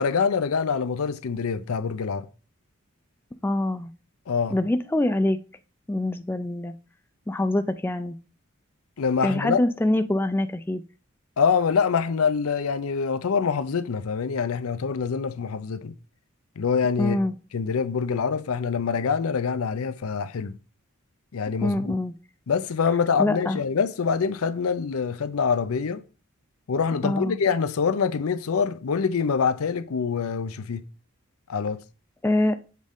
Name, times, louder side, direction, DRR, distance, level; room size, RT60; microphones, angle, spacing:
voice 1, 0.0-2.3 4.3-4.6 9.0-9.6 11.4-15.9 16.6-17.2 17.5-20.6 21.3-22.0 22.5-26.0 26.7-30.8 31.5-31.8, left 6 dB, 85° left, 0.5 m, -25 dB
voice 2, 3.4-3.9 4.5-5.4 5.9-6.7 7.3-8.2 9.2-10.8 17.0-17.4 21.6-22.1 23.2-23.6 27.0-27.4 32.2-32.5, left 1 dB, 10° left, 0.3 m, -24 dB
7.5 x 3.6 x 3.6 m
head